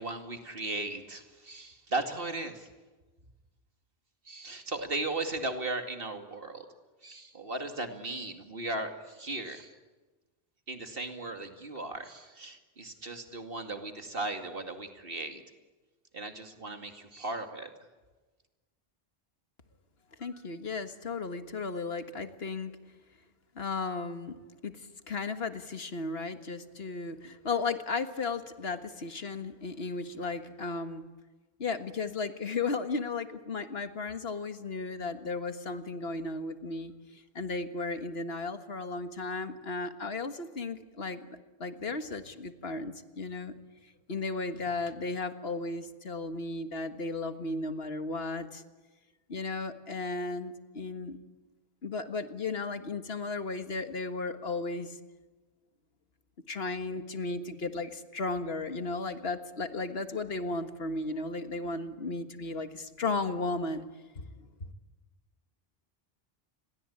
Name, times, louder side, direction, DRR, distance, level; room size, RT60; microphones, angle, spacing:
voice 1, 0.0-2.7 4.3-6.7 7.0-9.7 10.7-15.4 16.1-17.7, right 2 dB, 65° right, 6 dB, 2.6 m, -37 dB
voice 2, 20.2-22.7 23.6-24.3 24.6-24.7 25.1-31.0 31.6-41.2 41.6-43.5 44.1-48.6 49.3-51.2 51.8-55.0 56.5-63.9 64.2-64.3, left 3 dB, 80° left, 9 dB, 1.9 m, -35 dB
29.5 x 22.0 x 8.7 m, 1.2 s
omnidirectional pair, 1.0 m